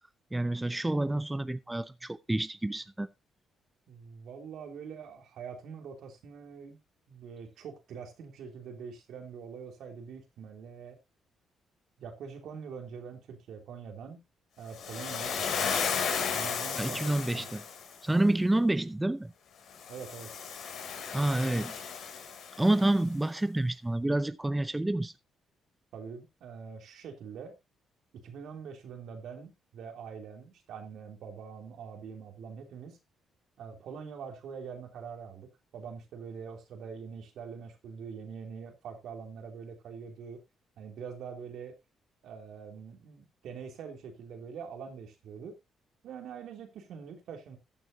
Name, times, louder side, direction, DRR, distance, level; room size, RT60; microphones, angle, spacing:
voice 1, 0.3-3.1 16.8-17.6 18.0-19.3 21.1-21.8 22.6-25.1, right 1 dB, 10° right, 0.5 m, -28 dB
voice 2, 3.9-6.8 7.1-11.0 12.0-14.2 14.6-15.8 16.3-17.5 19.9-20.3 25.9-27.5 28.1-33.0 33.6-40.4 40.8-41.7 42.2-45.6 46.0-47.6, right 6 dB, 75° right, 3.2 m, -44 dB
Waves surf, 14.7-18.0 19.7-22.8, left 6 dB, 70° left, 3.1 m, -34 dB
14.5 x 8.8 x 2.8 m
cardioid pair, 90°, 0 cm